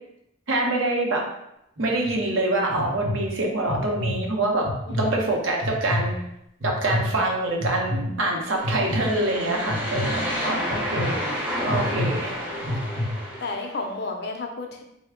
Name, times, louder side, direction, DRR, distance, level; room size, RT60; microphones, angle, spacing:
voice 1, 0.5-1.2 1.8-4.7 5.0-6.2 6.6-11.3 11.6-12.4, right 2 dB, 75° right, -1 dB, 0.7 m, -25 dB
sound 1, 1.8-2.1 2.7-3.2 3.7-4.1 4.6-5.1 5.6-6.0 6.6-7.0 7.6-8.0 8.6-9.0 9.7-10.0 10.7-11.0 11.7-12.1 12.6-13.1, left 1 dB, 45° right, 0.8 m, -28 dB
voice 2, 4.9-5.2 11.7-13.0 13.4-14.8, left 3 dB, 55° left, 3 dB, 0.4 m, -34 dB
sound 2, 8.4-13.8, equal, 10° right, 0.5 m, -30 dB
3.2 x 2.1 x 3.5 m, 0.80 s
head